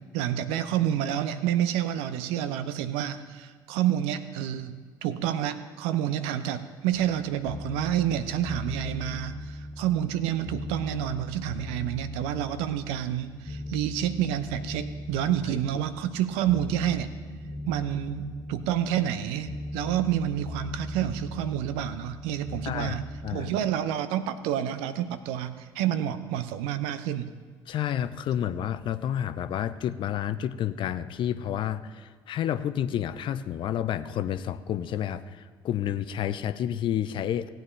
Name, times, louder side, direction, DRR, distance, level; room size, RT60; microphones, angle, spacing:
voice 1, 0.1-17.1 17.7-23.0 23.3-27.3, right 11 dB, 60° right, 12 dB, 0.7 m, -29 dB
sound 1, 6.9-23.4, equal, 30° left, 1.3 m, -38 dB
voice 2, 22.7-23.0 23.2-23.5 27.7-37.5, left 10 dB, 45° left, 12 dB, 0.6 m, -30 dB
18.0 x 8.9 x 3.3 m, 1.5 s
figure-of-eight pair, 55°, 12 cm